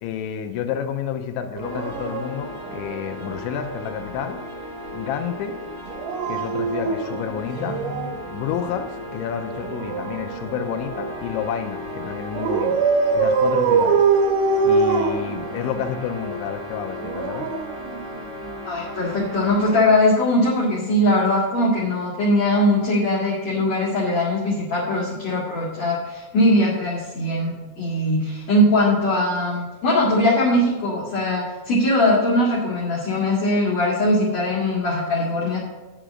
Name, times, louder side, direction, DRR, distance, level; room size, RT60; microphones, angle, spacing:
voice 1, 0.0-4.4 4.9-5.6 6.3-7.8 8.3-12.9 13.1-14.0 14.6-17.5, left 8 dB, 85° left, 7 dB, 2.8 m, -30 dB
Dog, 1.5-3.4 5.9-8.3 9.5-11.2 12.3-15.9 16.9-18.5 19.8-20.0, right 4 dB, 75° right, 2.7 m, -24 dB
sound 1, 1.6-19.8, left 1 dB, ahead, 1.5 m, -35 dB
voice 2, 18.6-35.6, left 1 dB, 50° left, -7 dB, 2.3 m, -20 dB
10.0 x 5.0 x 7.5 m, 1.2 s
omnidirectional pair, 5.7 m